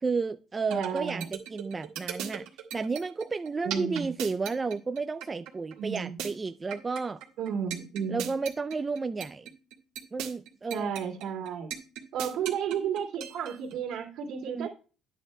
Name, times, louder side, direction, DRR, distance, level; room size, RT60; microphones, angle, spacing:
voice 1, 0.0-2.4 2.7-7.2 8.1-9.5 10.1-10.9 14.4-14.7, right 4 dB, 25° right, 0.3 m, -32 dB
voice 2, 0.7-1.3 3.6-4.1 5.8-6.2 7.4-8.3 10.7-11.7 12.1-14.7, right 7 dB, 70° right, 2.2 m, -32 dB
sound 1, 0.7-13.7, right 10 dB, 90° right, 1.7 m, -37 dB
10.0 x 8.1 x 2.2 m
cardioid pair, 105°, 0 cm